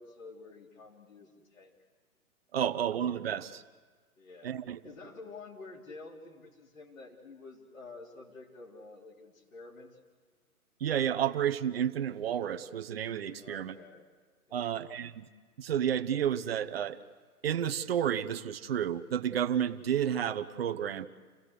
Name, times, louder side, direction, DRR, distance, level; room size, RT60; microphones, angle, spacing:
voice 1, 0.0-1.7 2.6-2.9 4.2-10.0 13.4-14.1 14.5-14.8, left 3 dB, 60° left, -3 dB, 3.5 m, -50 dB
voice 2, 2.5-3.6 4.4-4.8 10.8-13.8 14.5-15.3 15.6-17.0 17.4-21.1, right 9 dB, 40° right, 10 dB, 1.0 m, -31 dB
29.5 x 16.0 x 8.1 m, 1.5 s
figure-of-eight pair, 135°, 45 cm